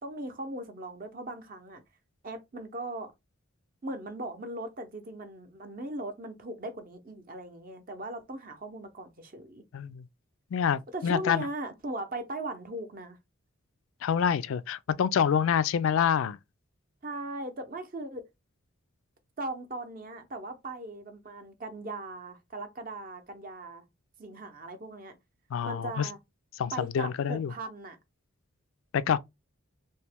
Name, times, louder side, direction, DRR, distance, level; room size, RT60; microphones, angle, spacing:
voice 1, 0.0-1.8 2.2-3.1 3.8-9.6 10.9-13.2 17.0-18.2 19.4-23.8 24.2-25.2 25.6-26.2 26.7-28.0, right 2 dB, 40° right, 0.7 m, -39 dB
voice 2, 9.7-10.0 10.5-11.5 14.0-16.4 25.5-26.1 26.6-27.5 28.9-29.2, left 8 dB, 65° left, 0.3 m, -27 dB
3.0 x 2.8 x 3.4 m
head